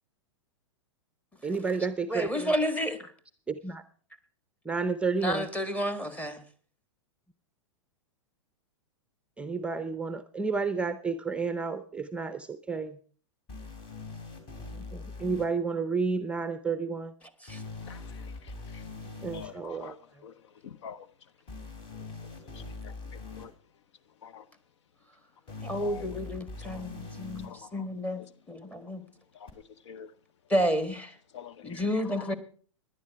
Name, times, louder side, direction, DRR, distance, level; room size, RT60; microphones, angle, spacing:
voice 1, 1.4-2.5 3.5-3.8 4.7-5.5 9.4-13.0 14.7-17.1 19.2-20.0, right 4 dB, 5° right, 0.6 m, -31 dB
voice 2, 2.1-3.1 5.2-6.4 17.4-17.6 25.6-28.2 28.5-29.0 30.5-31.1 31.6-32.4, equal, 10° left, 1.5 m, -30 dB
sound 1, 13.5-15.5 17.5-19.5 21.5-23.5 25.5-27.5 29.5-29.6, left 3 dB, 35° left, 3.3 m, -42 dB
voice 3, 19.3-19.9 20.2-20.3 20.6-21.0 22.5-22.9 23.4-23.5 24.2-24.4 25.8-26.1 26.6-26.9 27.4-27.7 29.4-29.5 29.9-30.1 31.3-31.5 32.0-32.3, left 7 dB, 65° left, 0.8 m, -45 dB
17.0 x 11.0 x 4.6 m
hypercardioid pair, 105°, 16 cm